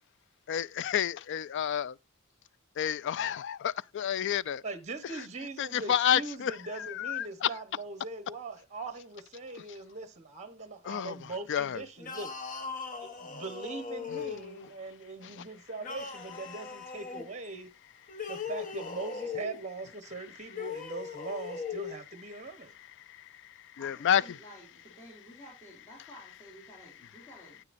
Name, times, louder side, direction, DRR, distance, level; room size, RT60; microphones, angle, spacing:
voice 1, 0.5-2.0 2.8-4.6 5.6-6.5 6.8-7.5 10.9-11.2 11.5-11.8 23.8-24.2, left 9 dB, 60° left, 0.4 m, -29 dB
voice 2, 4.6-12.6 13.0-17.7 18.3-22.8, right 3 dB, 35° right, 1.0 m, -41 dB
sound 1, 12.0-14.7 15.8-17.3 18.1-19.6 20.5-22.0, left 5 dB, 40° left, 1.3 m, -39 dB
voice 3, 23.8-27.6, equal, 15° left, 3.6 m, -52 dB
9.7 x 9.4 x 2.6 m
head